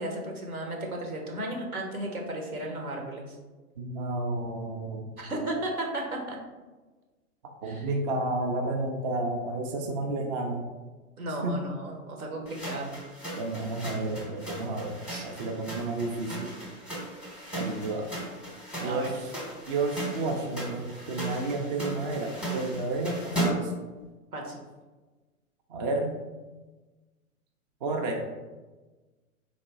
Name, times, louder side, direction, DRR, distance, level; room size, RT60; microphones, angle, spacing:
voice 1, 0.0-3.4 5.2-6.4 7.6-7.9 10.1-10.2 11.2-12.9 15.1-15.3 18.7-19.1 24.3-24.6, right 1 dB, 80° right, 1 dB, 1.1 m, -34 dB
voice 2, 3.8-5.1 7.6-10.6 11.4-11.6 13.4-16.5 17.5-18.1 18.8-19.3 19.7-23.7 25.7-26.2 27.8-28.3, right 2 dB, 30° right, 2 dB, 0.4 m, -31 dB
sound 1, 12.5-23.8, right 1 dB, 5° right, 0.8 m, -36 dB
4.0 x 2.8 x 3.4 m, 1.2 s
figure-of-eight pair, 105°, 43 cm